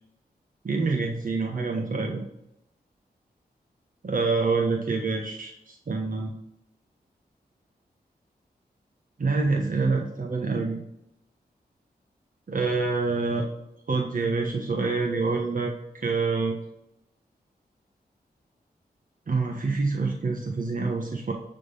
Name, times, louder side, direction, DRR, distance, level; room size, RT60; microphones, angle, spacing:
voice 1, 0.6-2.2 4.0-6.3 9.2-10.8 12.5-13.4 13.9-15.7 16.0-16.6 19.3-21.3, right 3 dB, 55° right, 1 dB, 1.2 m, -26 dB
10.5 x 4.0 x 5.4 m, 0.80 s
wide cardioid pair, 70°, 17 cm